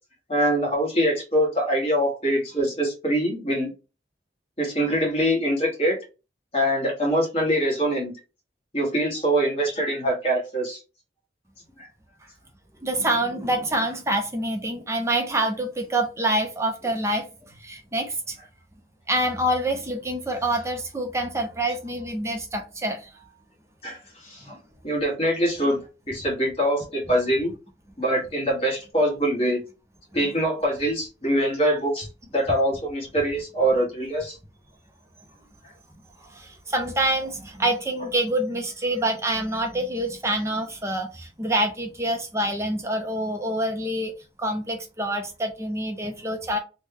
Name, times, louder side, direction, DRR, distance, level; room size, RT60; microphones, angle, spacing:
voice 1, 0.3-3.7 4.6-6.0 6.5-8.2 8.7-10.8 11.8-11.9 23.8-24.5 24.8-27.5 28.0-29.6 30.1-32.1 32.3-34.4, equal, 35° left, 1.4 m, -24 dB
voice 2, 12.8-18.4 19.1-23.1 36.2-44.1 44.4-46.6, right 1 dB, 15° right, 0.5 m, -26 dB
3.1 x 2.2 x 3.3 m
head